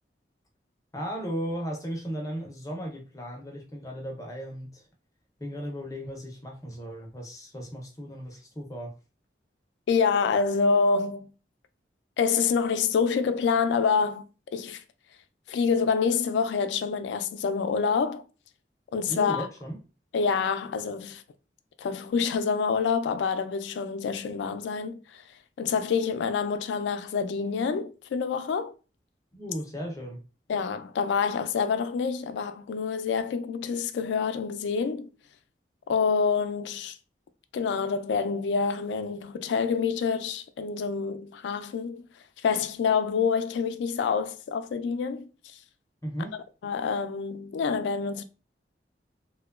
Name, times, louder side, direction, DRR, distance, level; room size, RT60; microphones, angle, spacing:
voice 1, 0.9-4.9 5.4-8.9 19.1-19.8 29.3-30.2 46.0-46.4, equal, 20° left, 0.5 m, -36 dB
voice 2, 9.9-11.3 12.2-14.2 14.5-14.8 15.5-18.2 18.9-19.5 20.1-21.2 21.8-25.2 25.6-28.7 30.5-35.1 35.9-37.0 37.5-42.0 42.4-45.3 46.6-48.2, left 5 dB, 85° left, 0.3 m, -27 dB
2.8 x 2.1 x 2.2 m
head